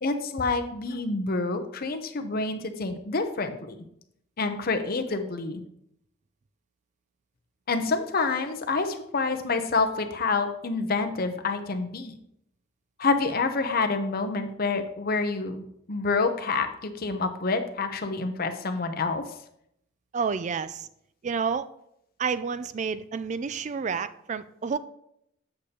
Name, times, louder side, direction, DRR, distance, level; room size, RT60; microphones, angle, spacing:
voice 1, 0.0-3.8 4.4-5.6 7.7-12.2 13.0-19.2 21.4-21.5, left 3 dB, 50° left, 7 dB, 0.7 m, -28 dB
voice 2, 20.1-20.9 21.2-21.7 22.2-24.8, right 5 dB, 35° right, 14 dB, 0.3 m, -29 dB
8.2 x 6.7 x 2.8 m, 0.76 s
head